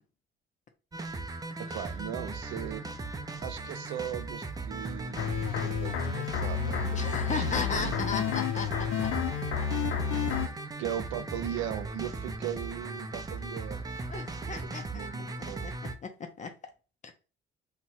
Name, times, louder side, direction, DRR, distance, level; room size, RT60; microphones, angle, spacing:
sound 1, 0.9-16.0, right 3 dB, 20° right, 0.5 m, -38 dB
voice 1, 1.7-2.8 3.4-6.8 7.3-8.2 10.8-13.8 14.5-15.7, right 10 dB, 85° right, 0.4 m, -38 dB
sound 2, 5.2-10.5, left 7 dB, 80° left, 0.5 m, -30 dB
voice 2, 6.9-9.1 14.1-15.7 16.0-16.5 17.0-17.1, left 5 dB, 40° left, 0.5 m, -36 dB
2.7 x 2.2 x 4.0 m
cardioid pair, 90°, 20 cm